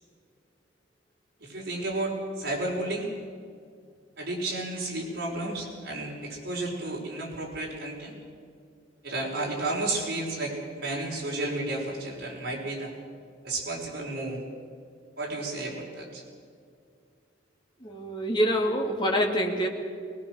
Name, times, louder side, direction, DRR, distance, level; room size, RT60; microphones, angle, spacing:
voice 1, 1.4-3.1 4.2-8.2 9.0-12.9 13.4-14.4 15.2-16.2, right 2 dB, 55° right, -2 dB, 5.5 m, -32 dB
voice 2, 17.8-19.7, equal, 25° left, 0 dB, 2.6 m, -26 dB
21.0 x 21.0 x 6.5 m, 2.3 s
head